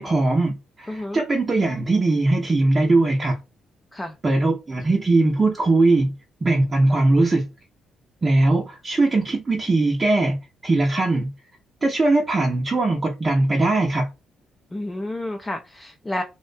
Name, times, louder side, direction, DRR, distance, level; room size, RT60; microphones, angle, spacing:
voice 1, 0.0-3.4 4.2-6.1 6.4-7.5 8.2-10.4 10.6-11.3 11.8-14.1, right 2 dB, 30° right, 0.6 m, -20 dB
voice 2, 0.9-1.2 3.9-4.2 14.7-16.2, left 1 dB, 15° left, 0.4 m, -30 dB
2.5 x 2.1 x 2.4 m
cardioid pair, 90°, 0 cm